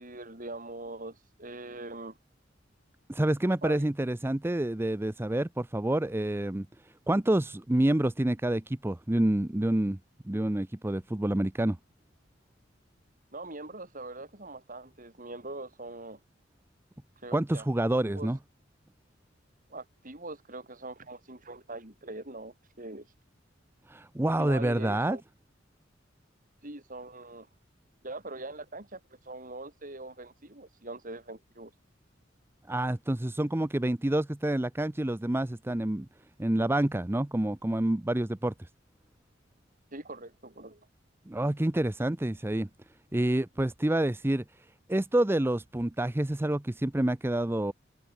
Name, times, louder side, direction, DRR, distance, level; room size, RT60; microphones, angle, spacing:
voice 1, 0.0-2.2 3.6-3.9 13.3-16.2 17.2-17.7 18.1-18.3 19.7-23.1 24.4-25.2 26.6-27.5 28.0-31.7 39.9-40.9, right 2 dB, 45° right, 7.5 m, -42 dB
voice 2, 3.1-6.7 7.1-10.0 10.2-11.8 17.3-18.4 23.9-25.2 32.7-36.1 36.4-38.5 41.3-42.7 43.1-44.4 44.9-47.7, right 1 dB, 10° right, 0.6 m, -28 dB
head